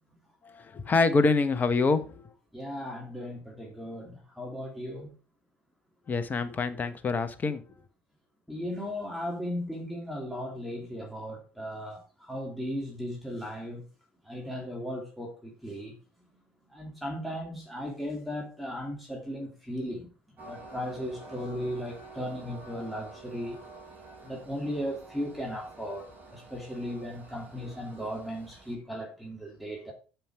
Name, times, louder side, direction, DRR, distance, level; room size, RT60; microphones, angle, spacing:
voice 1, 0.4-2.3 6.1-7.6, left 4 dB, 30° left, 1.3 m, -26 dB
voice 2, 2.5-5.1 8.5-13.9 14.2-15.9 16.7-20.1 20.4-23.6 24.2-29.9, equal, ahead, 2.7 m, -36 dB
Train, 20.4-28.7, right 3 dB, 30° right, 5.4 m, -49 dB
9.0 x 7.3 x 4.8 m
figure-of-eight pair, 65°, 6 cm